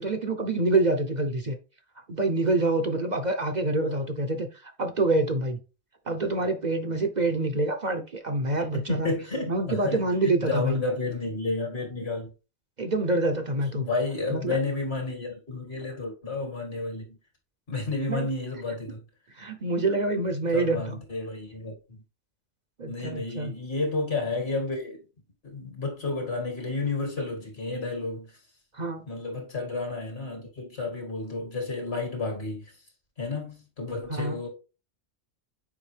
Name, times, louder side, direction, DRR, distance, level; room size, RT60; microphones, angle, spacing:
voice 1, 0.0-1.6 2.1-5.6 6.1-9.1 9.5-10.8 12.8-13.9 14.3-14.6 18.1-18.3 19.4-20.8 22.8-23.5 28.7-29.0 34.1-34.4, right 2 dB, 45° right, 0.8 m, -26 dB
voice 2, 8.7-10.0 10.2-12.3 13.7-17.2 17.7-19.0 20.5-22.0 22.9-25.0 25.4-28.3 29.1-32.7 33.2-34.5, left 3 dB, 65° left, 2.6 m, -31 dB
7.3 x 5.1 x 3.3 m
omnidirectional pair, 1.1 m